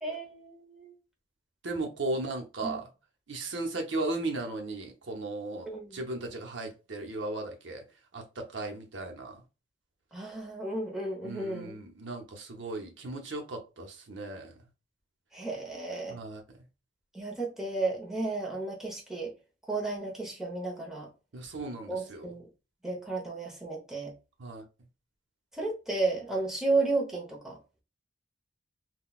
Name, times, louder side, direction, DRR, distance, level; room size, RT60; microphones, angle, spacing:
voice 1, 0.0-0.9 2.6-2.8 5.7-6.0 10.1-11.7 15.3-16.2 17.1-19.3 19.7-21.1 21.9-22.4 22.8-24.1 25.5-27.6, right 3 dB, ahead, 0.8 m, -33 dB
voice 2, 1.6-2.9 3.3-7.8 8.1-9.4 11.2-14.6 16.1-16.4 21.3-22.3 24.4-24.6, right 2 dB, 65° right, 0.8 m, -36 dB
3.8 x 2.2 x 2.3 m
head